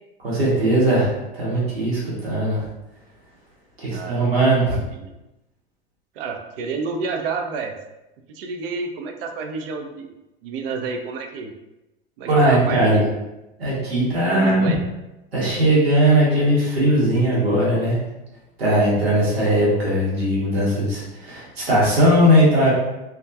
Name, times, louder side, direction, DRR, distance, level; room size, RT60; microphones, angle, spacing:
voice 1, 0.2-2.6 3.8-4.8 12.3-13.0 13.6-14.7 15.3-18.0 18.6-22.7, right 1 dB, 90° right, -6 dB, 0.9 m, -19 dB
voice 2, 3.9-4.2 4.6-5.1 6.2-7.7 8.3-10.1 10.4-11.5 12.2-13.1 14.3-14.8, right 4 dB, 70° right, 5 dB, 0.5 m, -29 dB
2.3 x 2.1 x 2.6 m, 0.98 s
hypercardioid pair, 85°, 30 cm